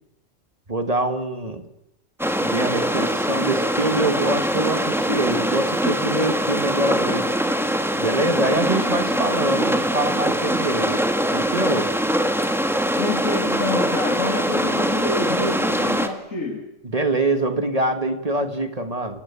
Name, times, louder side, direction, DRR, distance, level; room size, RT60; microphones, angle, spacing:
voice 1, 0.7-1.7 2.4-7.3 8.0-11.0 11.3-11.9 16.8-19.2, right 2 dB, 30° right, 8 dB, 1.9 m, -24 dB
sound 1, 2.2-16.1, equal, ahead, 1.7 m, -23 dB
voice 2, 13.0-16.7, left 3 dB, 75° left, 2 dB, 3.1 m, -27 dB
29.5 x 16.5 x 8.5 m, 0.91 s
omnidirectional pair, 1.4 m